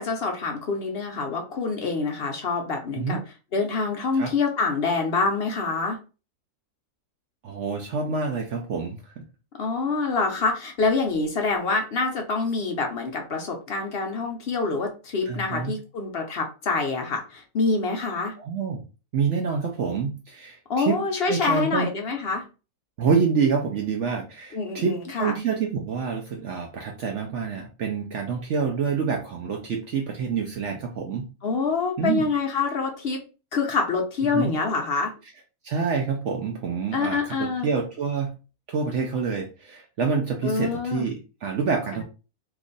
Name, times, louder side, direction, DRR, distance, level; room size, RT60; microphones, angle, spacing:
voice 1, 0.0-3.2 3.5-6.0 9.6-18.3 20.7-22.4 24.5-25.3 31.4-33.2 33.5-35.1 36.9-37.7 40.4-41.1 41.9-42.0, left 4 dB, 60° left, 2 dB, 0.6 m, -26 dB
voice 2, 7.4-9.0 15.3-15.7 18.4-18.8 19.1-21.0 21.3-21.9 23.0-31.3 32.0-32.3 34.3-34.6 35.6-38.3 38.7-42.0, right 5 dB, 65° right, 3 dB, 0.7 m, -27 dB
2.9 x 2.4 x 3.8 m, 0.32 s
omnidirectional pair, 1.6 m